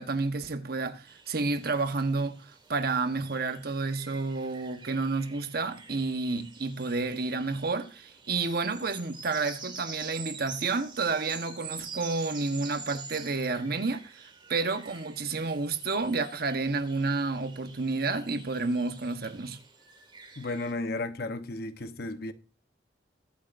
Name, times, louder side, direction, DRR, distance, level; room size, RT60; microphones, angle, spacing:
voice 1, 0.0-19.6, right 3 dB, 60° right, 1.1 m, -30 dB
sound 1, 1.1-20.7, right 5 dB, 25° right, 2.1 m, -47 dB
voice 2, 20.4-22.3, left 2 dB, 60° left, 0.9 m, -34 dB
21.5 x 8.6 x 2.6 m
head